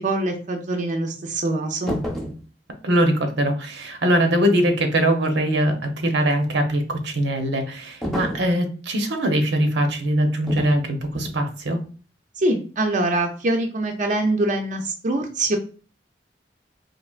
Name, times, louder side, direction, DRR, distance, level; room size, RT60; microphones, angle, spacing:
voice 1, 0.0-2.0 12.4-15.6, right 2 dB, 45° right, 3 dB, 0.5 m, -24 dB
sound 1, 1.9-2.4 8.0-8.5 10.5-10.8 11.1-11.4, equal, ahead, 0.7 m, -29 dB
voice 2, 2.8-11.8, right 1 dB, 85° right, 4 dB, 0.8 m, -22 dB
4.3 x 2.8 x 2.4 m, 0.38 s
head